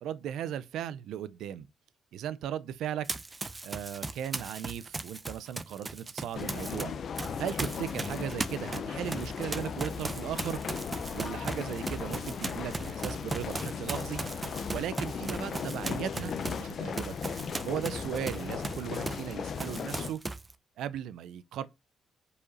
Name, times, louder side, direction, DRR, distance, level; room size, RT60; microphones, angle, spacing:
voice 1, 0.0-1.7 2.1-3.1 3.6-6.9 7.4-10.6 11.1-14.2 14.7-17.1 17.6-20.2 20.8-21.7, right 10 dB, 80° right, 0.5 m, -37 dB
Run, 3.0-6.8 7.2-19.3 19.6-20.5, right 3 dB, 25° right, 0.6 m, -38 dB
sound 1, 6.3-20.1, left 6 dB, 55° left, 0.6 m, -37 dB
5.0 x 4.8 x 4.1 m
cardioid pair, 90°, 0 cm